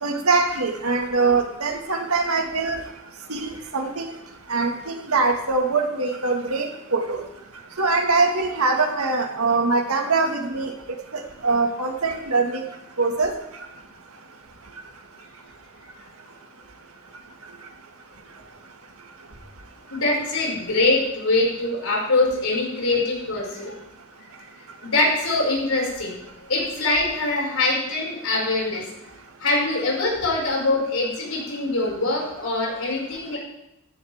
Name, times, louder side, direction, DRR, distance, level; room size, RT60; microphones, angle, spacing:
voice 1, 0.0-2.8 3.3-4.1 4.5-7.2 7.8-10.7 11.1-12.6 13.0-13.3, right 3 dB, 80° right, 3 dB, 1.9 m, -23 dB
voice 2, 19.9-23.7 24.8-26.2 26.5-28.8 29.4-33.4, left 2 dB, 75° left, -3 dB, 5.9 m, -23 dB
15.0 x 14.5 x 3.6 m, 0.86 s
head